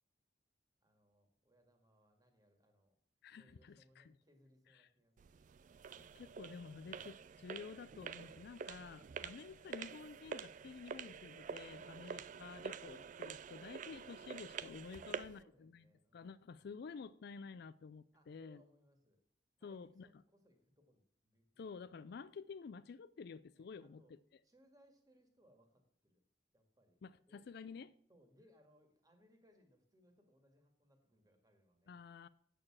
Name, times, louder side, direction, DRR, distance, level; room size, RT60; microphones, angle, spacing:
voice 1, 0.8-3.0 3.3-5.5 14.9-16.6 18.1-19.2 19.6-21.9 23.5-24.1 24.4-26.2 26.5-27.5 28.1-32.0, equal, 20° right, 1.9 m, -70 dB
voice 2, 3.2-4.1 6.0-15.8 16.1-18.6 19.6-20.1 21.6-24.0 27.0-27.9 31.9-32.3, left 5 dB, 60° left, 0.4 m, -51 dB
sound 1, 5.2-15.4, right 6 dB, 45° right, 0.3 m, -48 dB
8.7 x 6.7 x 7.3 m
head